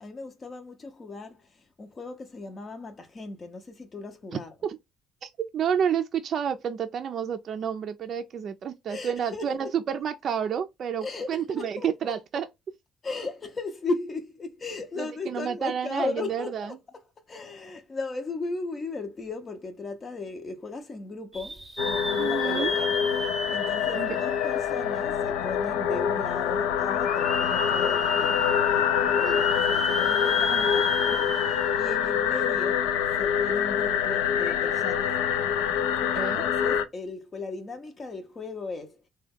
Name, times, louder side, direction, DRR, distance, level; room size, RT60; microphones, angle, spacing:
voice 1, 0.0-4.5 8.9-9.7 11.0-12.1 13.0-16.8 17.3-22.9 23.5-32.9 33.2-35.1 36.1-39.1, left 3 dB, 35° left, 0.6 m, -37 dB
voice 2, 5.2-12.5 15.0-16.7 22.2-22.7 23.9-24.1 30.5-30.8 36.0-36.4, right 8 dB, 55° right, 0.4 m, -30 dB
sound 1, 21.3-25.3 25.8-25.9 27.0-31.9 32.3-32.4 34.4-34.5, equal, 15° right, 0.8 m, -34 dB
sound 2, 21.8-36.8, left 8 dB, 80° left, 0.4 m, -25 dB
3.3 x 2.2 x 3.5 m
hypercardioid pair, 55°, 0 cm